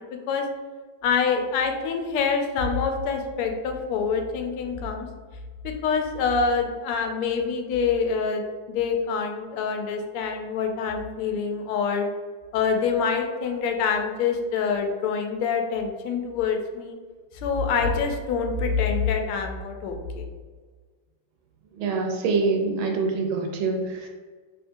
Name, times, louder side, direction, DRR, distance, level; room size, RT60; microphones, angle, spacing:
voice 1, 1.0-5.1 5.6-8.4 8.7-12.1 12.5-17.0 17.3-20.2, left 5 dB, 85° left, 4 dB, 1.5 m, -26 dB
voice 2, 21.8-24.1, right 4 dB, 75° right, 3 dB, 1.3 m, -25 dB
3.6 x 3.3 x 2.6 m, 1.5 s
omnidirectional pair, 2.4 m